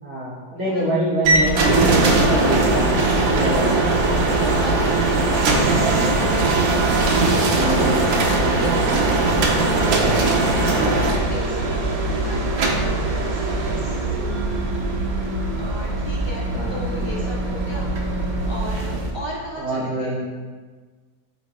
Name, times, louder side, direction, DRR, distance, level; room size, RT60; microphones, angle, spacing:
voice 1, 0.0-3.8 7.4-8.9 10.6-10.8 16.5-17.3 19.6-20.2, right 1 dB, 10° right, -11 dB, 1.4 m, -26 dB
sound 1, 1.2-19.1, right 2 dB, 65° right, 1.2 m, -20 dB
voice 2, 1.9-2.5 3.6-6.1 7.6-10.3 10.8-11.8 12.2-14.1 15.6-20.2, equal, 40° right, -5 dB, 0.4 m, -36 dB
8.1 x 5.2 x 2.2 m, 1.4 s
omnidirectional pair, 1.8 m